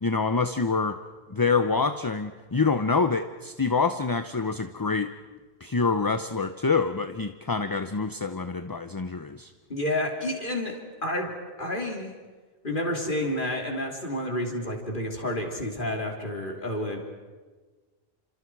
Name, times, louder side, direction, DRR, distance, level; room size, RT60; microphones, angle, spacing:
voice 1, 0.0-1.0 1.3-5.1 5.6-9.5, left 4 dB, 25° left, 9 dB, 0.6 m, -26 dB
voice 2, 9.7-11.3 11.6-12.1 12.6-17.0, left 1 dB, 50° left, 2 dB, 3.4 m, -30 dB
29.5 x 26.5 x 4.7 m, 1.4 s
omnidirectional pair, 1.1 m